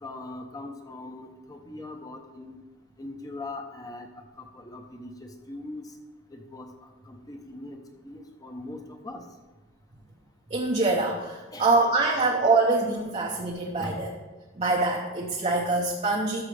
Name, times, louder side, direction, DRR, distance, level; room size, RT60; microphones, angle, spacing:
voice 1, 0.0-2.6 3.0-4.1 4.4-5.9 6.3-9.2 11.5-11.9 12.3-12.4 13.8-14.1, left 2 dB, 20° left, 4 dB, 0.8 m, -41 dB
voice 2, 10.5-14.1 14.6-16.4, right 3 dB, 30° right, -1 dB, 0.7 m, -24 dB
11.5 x 6.6 x 3.3 m, 1.2 s
head